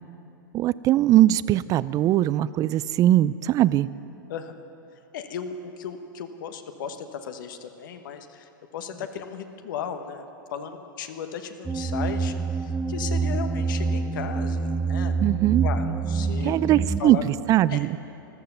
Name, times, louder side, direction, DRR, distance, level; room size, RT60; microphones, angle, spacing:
voice 1, 0.5-3.9 15.2-15.7 16.4-18.0, right 13 dB, 30° right, 18 dB, 0.4 m, -21 dB
voice 2, 5.1-10.3 10.5-15.1 15.6-17.2 17.7-17.8, left 7 dB, 70° left, 8 dB, 1.2 m, -36 dB
sound 1, 11.6-17.0, right 4 dB, 10° right, 0.8 m, -26 dB
14.0 x 12.5 x 6.9 m, 3.0 s
hypercardioid pair, 110°, 11 cm